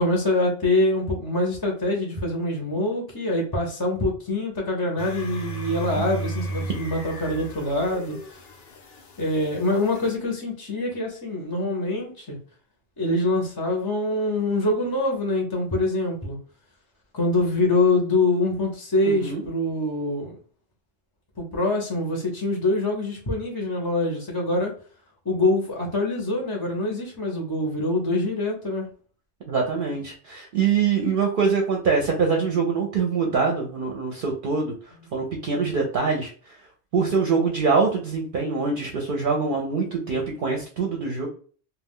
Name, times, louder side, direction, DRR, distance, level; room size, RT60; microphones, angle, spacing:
voice 1, 0.0-8.5 9.2-12.4 13.0-16.4 17.1-20.3 21.4-24.7 25.2-28.9, left 2 dB, 25° left, 0 dB, 0.5 m, -24 dB
sound 1, 5.0-10.1, right 1 dB, 65° left, 0.8 m, -35 dB
voice 2, 19.0-19.4 29.5-34.7 35.1-36.5 36.9-41.3, right 5 dB, 60° right, 1 dB, 0.7 m, -24 dB
2.3 x 2.2 x 3.5 m, 0.42 s
omnidirectional pair, 1.1 m